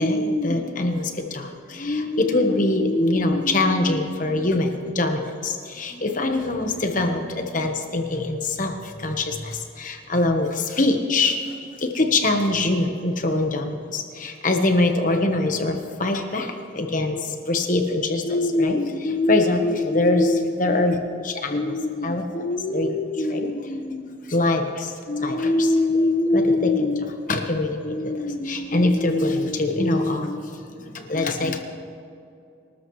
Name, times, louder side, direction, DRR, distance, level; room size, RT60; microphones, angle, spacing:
voice 1, 0.0-21.0 21.2-31.6, left 2 dB, 40° left, 4 dB, 1.2 m, -23 dB
25.0 x 13.0 x 3.2 m, 2.5 s
head